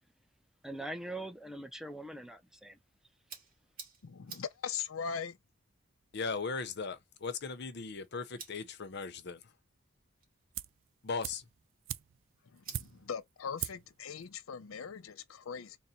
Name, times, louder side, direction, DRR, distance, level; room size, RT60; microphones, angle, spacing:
voice 1, 0.6-2.8, right 1 dB, 5° right, 0.5 m, -42 dB
sound 1, 2.6-14.9, right 6 dB, 45° right, 2.1 m, -57 dB
voice 2, 4.0-5.4 12.5-15.8, left 6 dB, 90° left, 0.5 m, -40 dB
voice 3, 6.1-9.4 11.0-11.4, left 4 dB, 55° left, 0.7 m, -38 dB
sound 2, 10.5-10.9 11.2-13.2 13.6-14.0 14.2-14.3, right 11 dB, 70° right, 0.4 m, -41 dB
3.9 x 2.2 x 4.2 m
head